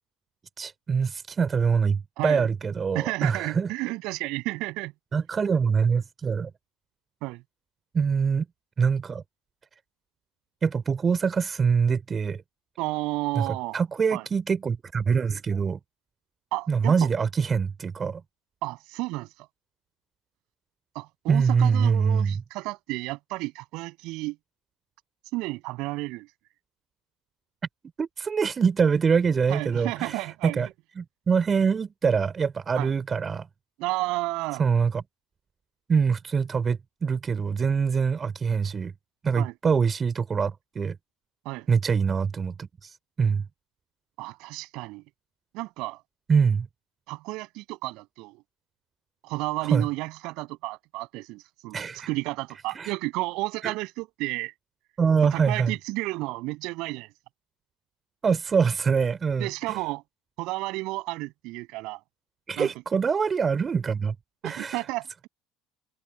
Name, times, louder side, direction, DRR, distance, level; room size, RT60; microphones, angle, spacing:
voice 1, 0.6-3.7 5.1-6.5 7.9-8.5 8.8-9.2 10.6-12.4 13.4-15.8 16.7-18.2 21.3-22.3 28.0-30.7 31.0-33.5 34.6-35.0 35.9-38.9 39.2-41.0 41.7-43.4 46.3-46.7 49.7-49.9 51.7-52.1 52.8-52.9 53.6-53.7 55.0-55.7 58.2-59.8 62.5-64.1 64.4-64.8, right 6 dB, 30° right, 3.8 m, -24 dB
voice 2, 2.2-2.5 2.9-4.9 7.2-7.4 12.8-13.8 14.1-14.3 16.5-16.9 18.6-19.3 20.9-24.4 25.3-26.3 29.5-30.6 32.7-32.9 33.8-34.6 39.4-39.5 41.4-41.7 44.2-45.0 45.5-46.0 47.1-48.4 49.2-54.5 55.2-57.1 59.4-60.0 60.4-62.0 62.6-62.7 64.4-65.3, right 22 dB, 65° right, 7.9 m, -32 dB
hypercardioid pair, 80°, 0 cm